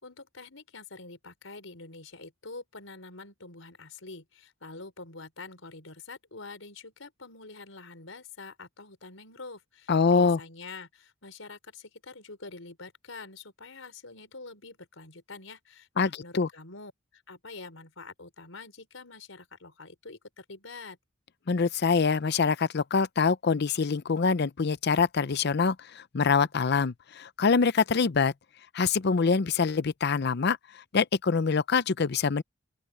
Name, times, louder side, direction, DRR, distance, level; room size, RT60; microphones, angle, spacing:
voice 1, 0.0-21.0, left 3 dB, 80° left, 4.6 m, -46 dB
voice 2, 9.9-10.4 16.0-16.1 16.3-16.5 21.5-28.3 28.7-30.6 30.9-32.4, left 5 dB, 55° left, 0.6 m, -25 dB
open air
head